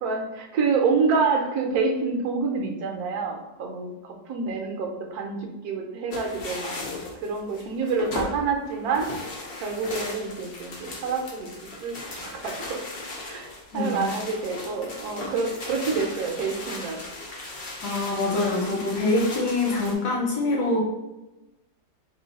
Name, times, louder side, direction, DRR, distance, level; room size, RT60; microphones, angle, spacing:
voice 1, 0.0-6.9 7.2-9.1 9.6-11.5 11.8-12.8 13.2-17.0, right 4 dB, 65° right, 2 dB, 1.0 m, -27 dB
sound 1, 6.1-19.9, left 2 dB, 85° left, 0.5 m, -37 dB
voice 2, 17.8-20.8, left 2 dB, 65° left, -2 dB, 1.2 m, -24 dB
3.1 x 2.6 x 4.0 m, 0.99 s
omnidirectional pair, 2.0 m